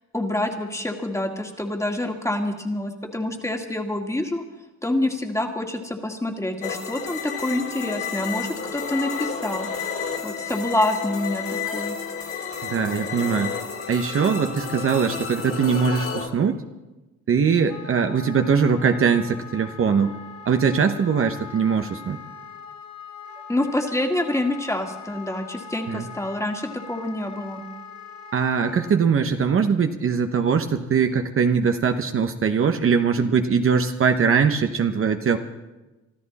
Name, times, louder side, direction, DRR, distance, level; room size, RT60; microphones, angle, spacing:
voice 1, 0.1-4.4 4.8-9.7 10.2-12.0 23.5-27.6, left 1 dB, 10° left, 3 dB, 2.1 m, -27 dB
sound 1, 6.6-16.3, left 6 dB, 45° left, 2.7 m, -31 dB
voice 2, 12.6-13.5 13.9-16.6 17.3-20.1 20.4-22.2 25.9-26.1 28.3-35.4, right 6 dB, 45° right, 6 dB, 1.0 m, -21 dB
Wind instrument woodwind instrument, 17.7-29.0, left 5 dB, 65° left, 1.6 m, -41 dB
25.0 x 13.0 x 4.2 m, 1.1 s
cardioid pair, 90°, 30 cm